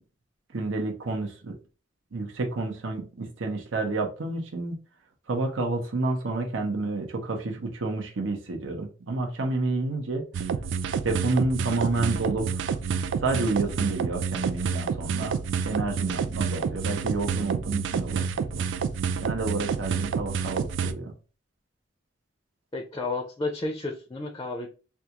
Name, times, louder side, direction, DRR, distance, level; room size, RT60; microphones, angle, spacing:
voice 1, 0.5-1.5 2.1-4.7 5.3-10.2 11.0-12.8 13.2-18.7 19.2-21.1, right 3 dB, 85° right, 2 dB, 0.7 m, -29 dB
sound 1, 10.3-20.9, right 6 dB, 70° right, 0.3 m, -29 dB
voice 2, 22.7-24.7, left 3 dB, 20° left, 3 dB, 0.4 m, -31 dB
3.5 x 2.3 x 2.8 m, 0.34 s
head